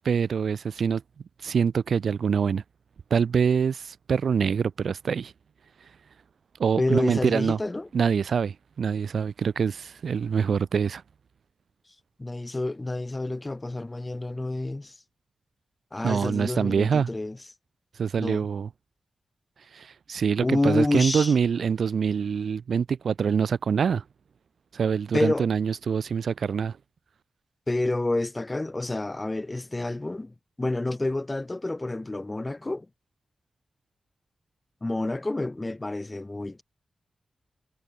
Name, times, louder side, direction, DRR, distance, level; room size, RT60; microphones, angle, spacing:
voice 1, 0.0-1.0 1.4-2.6 3.1-5.3 6.6-7.6 7.9-11.0 16.0-17.1 18.0-18.7 19.7-24.0 24.7-26.8, right 6 dB, 75° right, 0.5 m, -25 dB
voice 2, 6.8-7.9 12.2-14.9 15.9-17.4 18.2-18.5 20.4-21.3 25.1-25.5 27.7-32.9 34.8-36.6, left 2 dB, 20° left, 1.3 m, -28 dB
wide cardioid pair, 130°, 0 cm